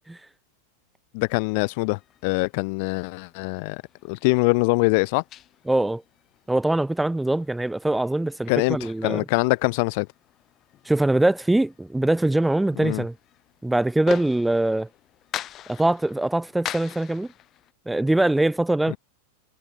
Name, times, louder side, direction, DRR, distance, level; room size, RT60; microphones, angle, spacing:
voice 1, 1.1-3.8 4.1-5.2 8.5-8.8 9.0-10.1 12.8-13.0 18.9-19.0, left 30 dB, 45° left, 0.5 m, -23 dB
sound 1, 1.2-17.7, left 12 dB, 30° left, 0.9 m, -43 dB
voice 2, 5.7-6.0 6.5-9.2 10.9-13.1 13.6-14.9 15.7-17.3 17.9-19.0, right 1 dB, 5° right, 0.5 m, -22 dB
figure-of-eight pair, 90°, 0 cm